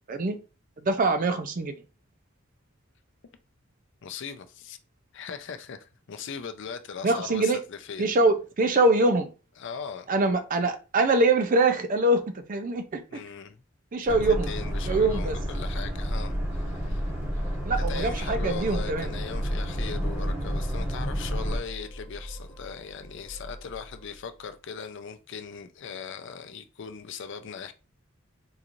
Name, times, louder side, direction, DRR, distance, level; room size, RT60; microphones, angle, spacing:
voice 1, 0.8-1.7 7.0-7.6 8.0-9.3 10.1-13.2 13.9-14.5 14.9-15.4 17.6-19.1, right 2 dB, 40° right, 0.5 m, -24 dB
voice 2, 4.0-4.8 5.1-8.1 9.6-10.1 13.1-13.6 14.1-27.7, left 6 dB, 65° left, 0.5 m, -39 dB
Boat Water vehicle, 14.1-21.6, equal, 15° right, 1.3 m, -30 dB
sound 1, 16.7-24.5, equal, 20° left, 0.8 m, -43 dB
3.7 x 3.0 x 2.5 m
head